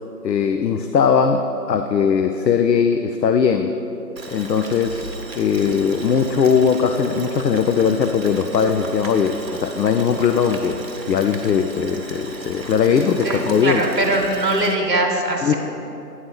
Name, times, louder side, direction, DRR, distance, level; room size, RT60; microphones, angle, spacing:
voice 1, 0.2-3.7 4.3-5.0 5.3-13.8 15.4-15.5, left 6 dB, 80° left, 6 dB, 0.6 m, -19 dB
Boiling, 4.2-14.8, right 3 dB, 55° right, 0.9 m, -35 dB
voice 2, 13.2-15.5, right 1 dB, 75° right, 2 dB, 1.2 m, -21 dB
9.4 x 4.0 x 6.2 m, 2.9 s
figure-of-eight pair, 170°, 50 cm